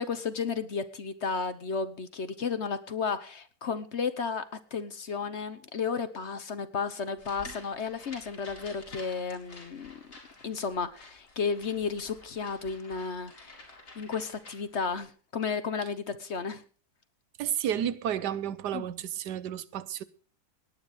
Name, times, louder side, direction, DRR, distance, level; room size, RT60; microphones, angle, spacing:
voice 1, 0.0-4.4 4.7-10.0 10.4-13.6 13.9-16.6 18.7-18.9, left 5 dB, 50° left, 1.1 m, -33 dB
sound 1, 7.2-15.1, left 2 dB, 65° left, 5.0 m, -50 dB
voice 2, 17.4-20.0, right 10 dB, 85° right, 1.4 m, -31 dB
18.5 x 9.6 x 5.0 m
omnidirectional pair, 1.7 m